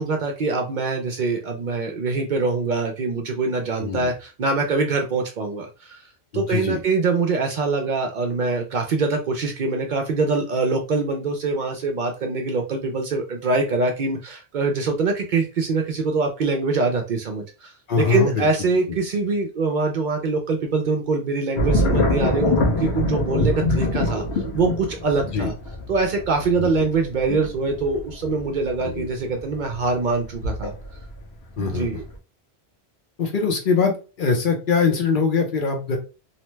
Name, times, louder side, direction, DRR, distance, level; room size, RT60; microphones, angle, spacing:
voice 1, 0.0-6.0 6.3-25.5 25.9-30.7 31.6-32.0, right 3 dB, 60° right, 3 dB, 0.6 m, -24 dB
voice 2, 6.3-6.8 17.9-18.5 23.9-24.0 25.3-25.5 26.6-26.7 28.8-29.1 31.6-32.0 33.2-36.0, left 5 dB, 55° left, 3 dB, 0.8 m, -23 dB
sound 1, 21.5-31.2 31.6-32.1, left 1 dB, 85° left, 1.0 m, -24 dB
2.8 x 2.1 x 3.0 m, 0.32 s
omnidirectional pair, 1.1 m